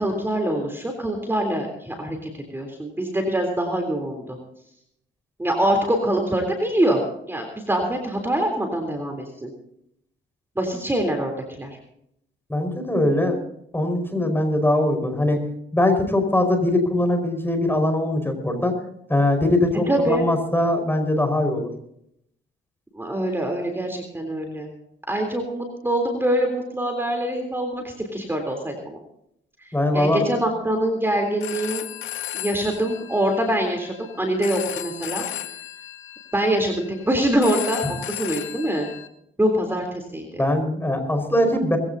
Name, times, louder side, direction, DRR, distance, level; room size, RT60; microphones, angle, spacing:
voice 1, 0.0-4.4 5.4-7.0 7.3-9.5 10.5-11.8 19.9-20.2 22.9-24.7 25.1-29.0 29.9-31.8 32.3-35.4 36.3-38.9 39.4-40.4, right 1 dB, 10° right, 3 dB, 3.5 m, -24 dB
voice 2, 12.5-13.4 13.7-15.4 15.7-18.8 19.1-21.7 29.7-30.3 40.4-41.8, left 1 dB, 10° left, 5 dB, 5.0 m, -21 dB
Telephone, 31.2-39.1, left 12 dB, 85° left, 1.6 m, -35 dB
21.5 x 16.0 x 2.8 m, 0.73 s
cardioid pair, 90°, 20 cm